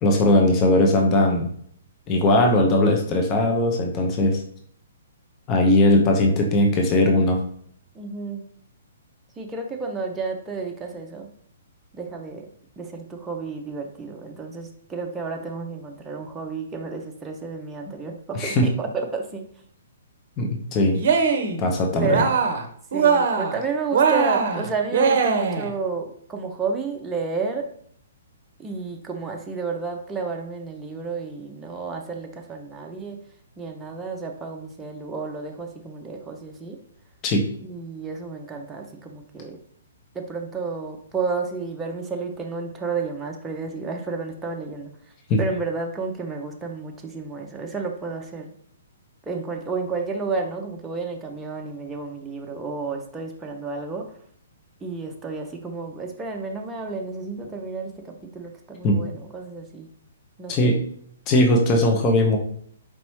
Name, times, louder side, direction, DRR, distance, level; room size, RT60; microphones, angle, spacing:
voice 1, 0.0-1.5 2.1-4.4 5.5-7.4 18.4-18.7 20.4-21.0 21.6-22.2 37.2-37.4 45.3-45.4 58.8-59.0 60.5-60.8 61.3-62.4, left 1 dB, 30° left, 2 dB, 0.6 m, -19 dB
voice 2, 7.9-8.5 9.4-11.3 11.9-12.5 12.8-19.4 22.0-22.3 22.9-27.7 28.6-33.2 33.6-36.8 37.6-39.6 40.1-44.9 45.4-48.5 49.3-54.2 54.8-59.9 60.4-60.8, right 4 dB, 10° right, 1 dB, 0.5 m, -31 dB
Cheering, 20.9-21.6 22.0-22.7 22.9-23.6 23.9-25.7, right 5 dB, 55° right, 0.6 m, -21 dB
4.5 x 2.9 x 3.0 m, 0.62 s
figure-of-eight pair, 125°, 0 cm